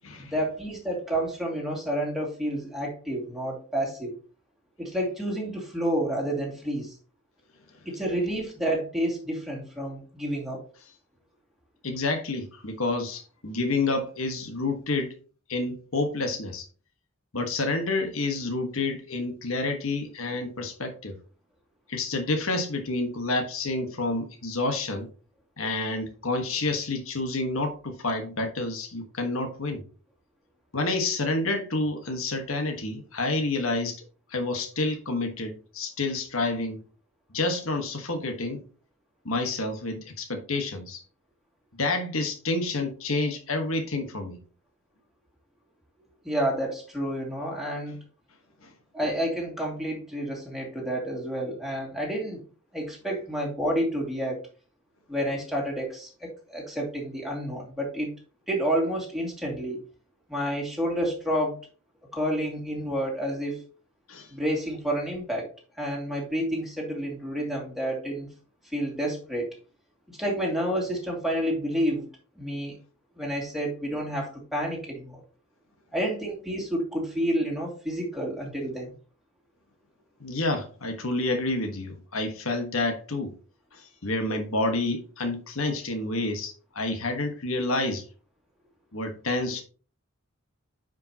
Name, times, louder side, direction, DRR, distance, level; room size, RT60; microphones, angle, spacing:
voice 1, 0.2-4.2 4.8-6.9 7.8-10.6 46.2-48.0 48.9-52.4 52.7-54.4 55.1-58.1 58.5-59.8 60.3-61.7 62.1-63.6 64.3-68.3 68.6-69.5 70.1-72.1 72.4-72.7 73.2-75.2 75.9-78.9, equal, ahead, -2 dB, 2.4 m, -29 dB
voice 2, 11.8-15.1 15.5-16.7 17.3-21.1 21.9-25.1 25.6-29.8 30.7-34.0 34.3-36.8 37.3-38.6 39.2-41.0 41.8-44.4 48.6-48.7 64.1-64.3 80.2-83.3 83.7-88.0 88.9-89.6, left 2 dB, 75° left, 5 dB, 1.4 m, -29 dB
9.6 x 5.3 x 2.9 m, 0.38 s
head